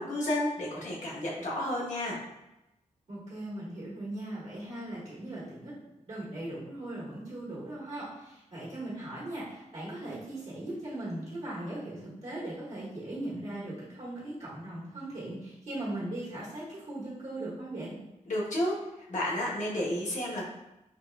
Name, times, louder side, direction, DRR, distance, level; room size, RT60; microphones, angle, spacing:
voice 1, 0.0-2.2 18.3-18.7 19.1-20.4, left 1 dB, 70° left, -5 dB, 1.0 m, -31 dB
voice 2, 3.1-5.7 6.1-18.0, right 1 dB, 60° right, -9 dB, 1.4 m, -39 dB
4.2 x 2.4 x 2.3 m, 0.92 s
wide cardioid pair, 110°, 13 cm